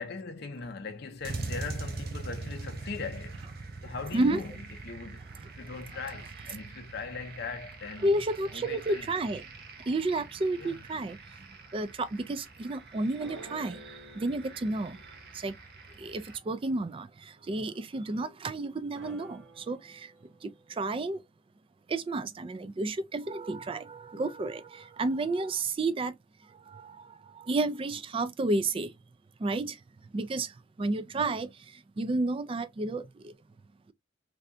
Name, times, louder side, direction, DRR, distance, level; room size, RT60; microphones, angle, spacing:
voice 1, 0.0-5.2 5.4-8.1 8.5-9.1 10.6-10.8, left 4 dB, 55° left, 0.6 m, -40 dB
sound 1, 1.2-16.4, right 3 dB, 50° right, 0.7 m, -43 dB
voice 2, 8.0-9.4 9.9-11.2 11.7-13.8 14.2-15.0 15.4-15.5 16.0-17.1 17.5-20.1 20.4-20.5 20.8-21.2 21.9-26.1 26.7-27.0 27.4-28.9 29.4-29.8 30.1-30.5 30.8-31.5 32.0-33.3, right 2 dB, 25° right, 0.3 m, -31 dB
sound 2, 13.2-15.7 16.0-16.1 16.4-16.5 19.0-21.0, right 1 dB, 85° right, 1.3 m, -51 dB
3.2 x 2.7 x 2.5 m
head